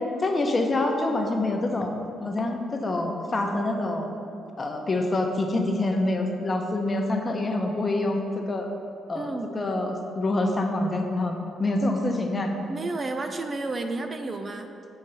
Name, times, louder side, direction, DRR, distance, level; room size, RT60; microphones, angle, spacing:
voice 1, 0.2-4.1 4.6-8.7 9.1-12.5, left 2 dB, 30° left, 3 dB, 1.0 m, -26 dB
voice 2, 9.1-9.5 12.7-14.7, right 2 dB, 35° right, 6 dB, 0.5 m, -31 dB
7.0 x 4.5 x 6.7 m, 2.8 s
cardioid pair, 90°, 0 cm